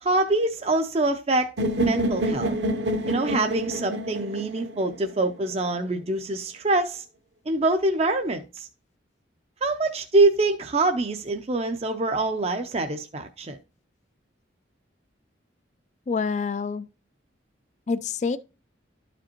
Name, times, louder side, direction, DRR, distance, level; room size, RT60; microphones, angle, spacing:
voice 1, 0.0-2.5 3.1-7.0 7.5-8.7 9.6-13.6, right 2 dB, 30° right, 0.5 m, -25 dB
sound 1, 1.6-5.5, right 1 dB, 65° right, 0.9 m, -28 dB
voice 2, 16.1-16.9 17.9-18.4, left 5 dB, 40° left, 0.3 m, -27 dB
12.0 x 5.0 x 2.9 m
head